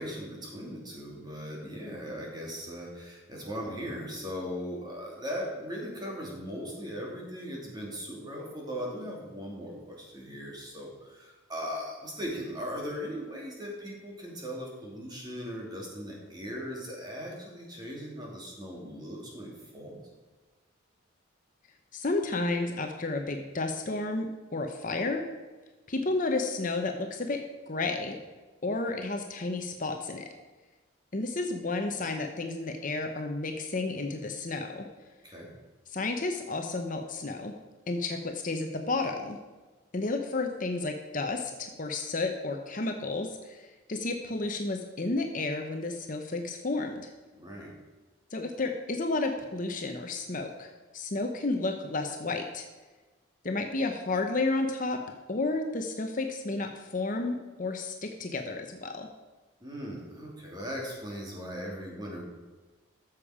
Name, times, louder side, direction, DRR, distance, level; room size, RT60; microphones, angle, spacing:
voice 1, 0.0-20.0 35.2-35.5 47.3-47.7 59.6-62.2, equal, 20° right, -2 dB, 2.6 m, -38 dB
voice 2, 21.9-25.2 25.9-28.2 28.6-30.3 31.1-34.9 35.9-37.5 37.9-39.4 39.9-47.1 48.3-52.7 53.4-55.0 55.3-59.1, left 3 dB, 40° left, 4 dB, 0.8 m, -32 dB
13.5 x 7.3 x 5.0 m, 1.3 s
head